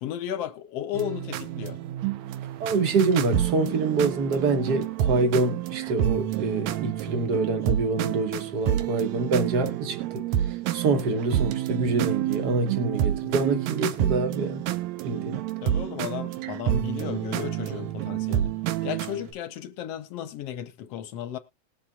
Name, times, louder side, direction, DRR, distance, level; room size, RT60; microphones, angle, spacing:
voice 1, 0.0-1.8 15.6-18.5 18.8-21.4, left 10 dB, 70° left, 1.6 m, -34 dB
sound 1, 0.9-19.3, right 12 dB, 75° right, 2.0 m, -29 dB
voice 2, 2.6-14.6 15.0-15.4, right 3 dB, 60° right, 1.0 m, -26 dB
19.5 x 7.4 x 2.3 m
omnidirectional pair, 3.3 m